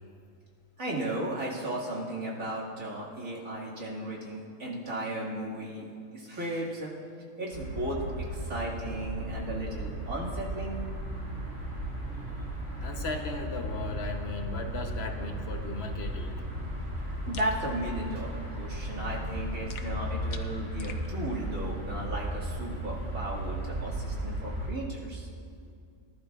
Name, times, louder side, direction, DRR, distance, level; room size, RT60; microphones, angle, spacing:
voice 1, 0.8-5.8 6.1-6.9 7.4-10.8 17.1-25.3, right 1 dB, 90° right, -5 dB, 2.4 m, -35 dB
sound 1, 7.5-24.7, right 1 dB, 65° right, 2.9 m, -35 dB
voice 2, 12.8-16.6, left 3 dB, 55° left, 4 dB, 1.1 m, -36 dB
sound 2, 17.3-17.6 19.7-21.1, left 7 dB, 90° left, 1.2 m, -46 dB
19.0 x 11.5 x 2.4 m, 2.4 s
omnidirectional pair, 1.4 m